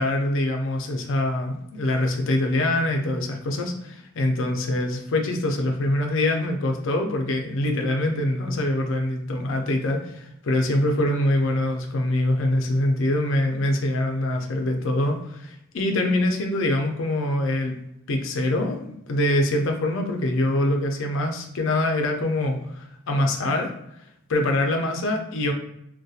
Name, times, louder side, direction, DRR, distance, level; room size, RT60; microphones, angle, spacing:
voice 1, 0.0-17.8 18.1-23.7 24.3-25.5, left 1 dB, 60° left, 3 dB, 0.4 m, -24 dB
2.7 x 2.1 x 2.3 m, 0.79 s
head